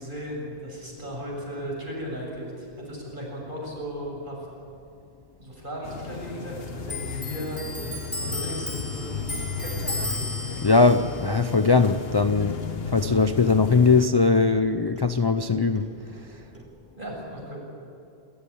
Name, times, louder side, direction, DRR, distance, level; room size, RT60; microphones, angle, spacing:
voice 1, 0.0-4.4 5.4-7.6 8.2-9.3 9.6-10.1 17.0-17.6, equal, 50° right, -3 dB, 7.2 m, -36 dB
sound 1, 5.8-14.1, left 6 dB, 65° left, 1.3 m, -34 dB
Clock, 6.9-13.9 14.2-15.5 15.8-16.6, left 1 dB, 10° right, 3.8 m, -36 dB
voice 2, 10.6-12.6 12.9-15.9, left 4 dB, 30° left, 9 dB, 0.5 m, -20 dB
27.5 x 14.0 x 9.9 m, 2.6 s
omnidirectional pair, 1.1 m